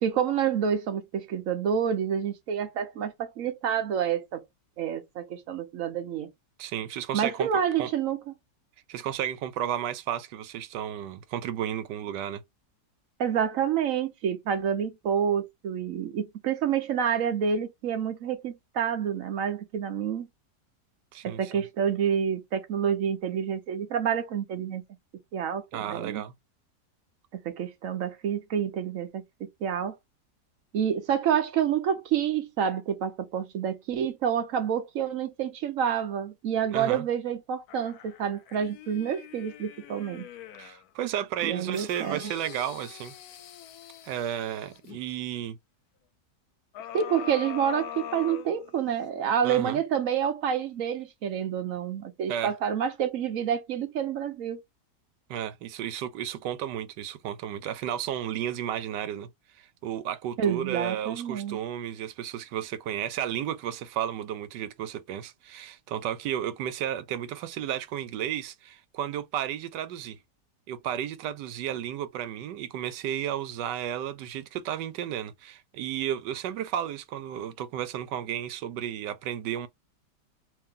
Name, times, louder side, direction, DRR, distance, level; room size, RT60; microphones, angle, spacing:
voice 1, 0.0-4.4 4.8-6.3 7.1-8.2 13.2-20.3 21.2-24.8 25.3-26.2 27.4-30.0 30.7-40.3 41.4-42.2 46.9-54.6 60.4-61.6, right 8 dB, 60° right, 1.0 m, -28 dB
voice 2, 6.6-7.9 8.9-12.4 21.1-21.6 25.7-26.3 36.7-37.1 40.6-43.1 44.0-45.6 49.4-49.8 52.3-52.5 55.3-59.3 59.8-70.2 70.7-79.7, right 10 dB, 90° right, 1.2 m, -33 dB
sound 1, 37.7-40.8 41.4-45.0 46.7-49.1 49.6-49.7, left 10 dB, 70° left, 1.0 m, -43 dB
3.1 x 2.7 x 3.6 m
omnidirectional pair, 1.8 m